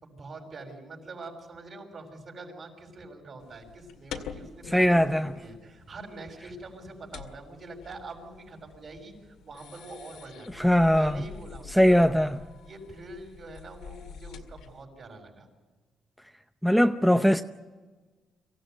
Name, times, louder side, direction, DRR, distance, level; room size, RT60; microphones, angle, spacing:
voice 1, 0.0-12.1 12.6-15.5, right 2 dB, 45° right, 6.2 m, -44 dB
sound 1, 3.4-14.8, left 7 dB, 85° left, 2.1 m, -46 dB
voice 2, 4.7-5.3 10.6-11.2 11.7-12.4 16.6-17.4, equal, ahead, 0.7 m, -20 dB
25.0 x 15.5 x 9.3 m
cardioid pair, 90°, 0 cm